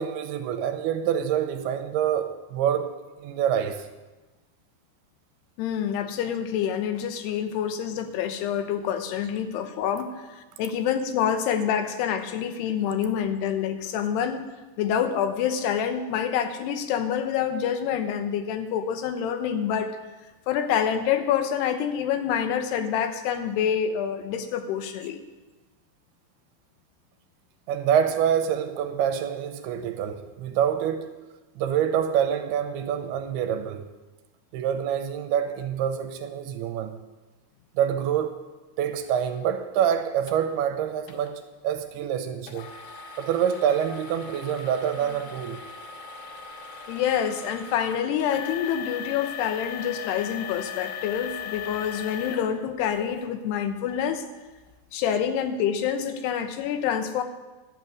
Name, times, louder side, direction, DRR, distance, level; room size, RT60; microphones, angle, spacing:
voice 1, 0.0-2.9 3.2-3.9 27.7-31.1 31.6-33.8 34.5-36.9 37.8-38.4 38.8-42.7 43.2-45.6, right 9 dB, 80° right, 2.8 m, -26 dB
voice 2, 5.6-14.5 14.8-20.0 20.5-25.2 46.9-54.2 54.9-57.2, left 8 dB, 90° left, 3.1 m, -27 dB
sound 1, 40.3-40.4 41.1-41.3 42.5-53.3 53.9-54.0 54.6-54.7, left 8 dB, 70° left, 2.7 m, -38 dB
11.5 x 6.9 x 9.4 m
omnidirectional pair, 4.6 m